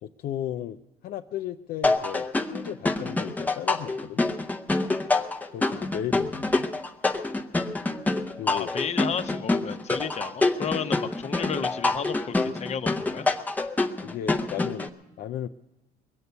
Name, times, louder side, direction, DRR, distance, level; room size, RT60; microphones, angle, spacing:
voice 1, 0.0-4.2 5.5-6.7 8.4-8.7 14.0-14.9 15.2-15.5, left 11 dB, 65° left, 6 dB, 0.4 m, -35 dB
sound 1, 1.8-14.9, left 2 dB, 10° left, 0.7 m, -26 dB
voice 2, 8.4-13.3, left 7 dB, 40° left, 9 dB, 0.9 m, -32 dB
22.0 x 8.1 x 6.9 m, 1.0 s
cardioid pair, 110°, 17 cm